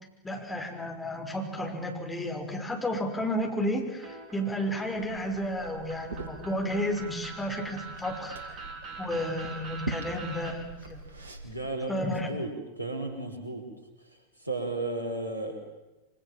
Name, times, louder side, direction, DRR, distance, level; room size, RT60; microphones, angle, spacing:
voice 1, 0.2-8.6 9.0-11.0 11.9-12.3, equal, 10° left, 2 dB, 5.6 m, -32 dB
sound 1, 4.0-10.5, right 4 dB, 30° right, 5.5 m, -43 dB
Liquid, 4.9-11.7, right 3 dB, 70° right, 3.4 m, -43 dB
voice 2, 11.4-12.5 12.8-13.6 14.4-15.5, right 2 dB, 90° left, 5 dB, 5.2 m, -33 dB
27.0 x 25.5 x 7.5 m, 1.1 s
figure-of-eight pair, 90°, 0 cm